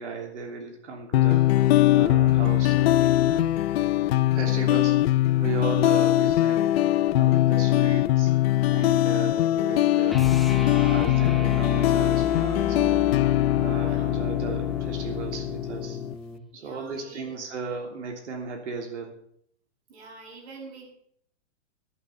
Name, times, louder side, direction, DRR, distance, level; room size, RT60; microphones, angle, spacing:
voice 1, 0.0-1.5 1.9-3.5 4.3-8.3 8.7-10.2 10.7-13.1 13.6-16.0 16.5-19.2, right 5 dB, 85° right, 2 dB, 3.2 m, -36 dB
sound 1, 1.1-16.1, left 14 dB, 60° left, 0.5 m, -22 dB
sound 2, 10.1-16.5, left 4 dB, ahead, 0.7 m, -33 dB
voice 2, 13.8-14.1 16.5-17.4 19.9-20.9, right 3 dB, 65° right, -2 dB, 7.2 m, -45 dB
12.0 x 11.0 x 5.6 m, 0.68 s
hypercardioid pair, 150°, 34 cm